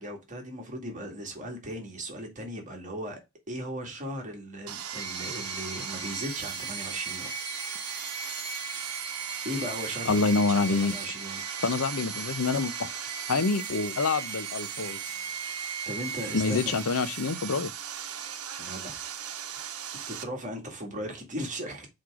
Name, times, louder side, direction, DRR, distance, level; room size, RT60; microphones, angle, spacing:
voice 1, 0.0-3.2 3.5-7.3 9.4-11.4 15.9-16.8 18.6-19.0 19.9-21.9, equal, 35° right, 2.1 m, -37 dB
Sawing, 4.7-20.2, right 9 dB, 80° right, 1.0 m, -38 dB
Phaser continuous fire, 5.0-17.8, right 2 dB, 20° left, 2.9 m, -41 dB
voice 2, 10.1-10.9 11.6-12.9 13.3-15.0 16.3-17.7, left 4 dB, 70° left, 0.7 m, -26 dB
6.3 x 4.3 x 4.8 m
head